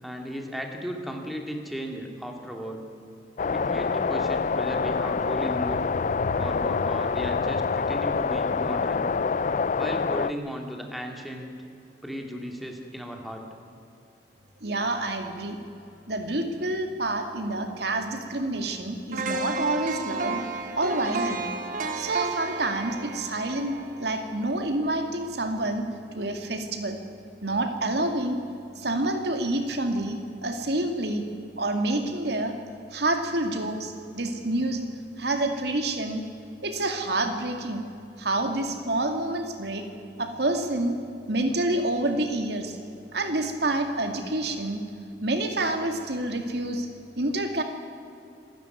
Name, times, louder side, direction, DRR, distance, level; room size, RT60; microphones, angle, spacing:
voice 1, 0.0-2.9 3.5-5.9 6.4-9.1 9.8-11.5 12.0-13.5, equal, ahead, 2 dB, 2.4 m, -35 dB
sound 1, 3.4-10.3, left 5 dB, 45° left, 0.5 m, -26 dB
voice 2, 14.6-15.6 16.1-20.4 20.7-21.4 21.9-25.8 26.1-27.0 27.4-28.4 28.8-31.2 31.6-32.5 32.9-34.8 35.2-36.2 36.6-37.8 38.2-39.8 40.2-40.9 41.3-42.8 43.1-44.8 45.2-46.9 47.2-47.6, right 2 dB, 65° right, 5 dB, 2.3 m, -28 dB
sound 2, 19.1-25.1 25.5-25.7, right 3 dB, 50° right, 1.8 m, -33 dB
27.0 x 13.0 x 9.2 m, 2.6 s
head